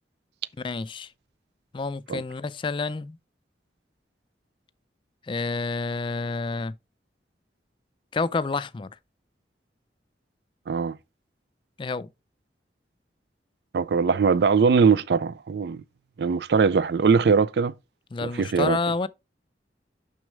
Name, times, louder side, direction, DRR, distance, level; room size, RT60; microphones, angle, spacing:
voice 1, 0.6-1.1 1.7-3.2 5.3-6.7 8.1-8.9 11.8-12.1 18.1-19.1, left 3 dB, 30° left, 0.3 m, -29 dB
voice 2, 10.7-11.0 13.7-15.8 16.2-17.7 18.2-18.8, right 5 dB, 65° right, 0.4 m, -21 dB
6.3 x 6.2 x 3.3 m
head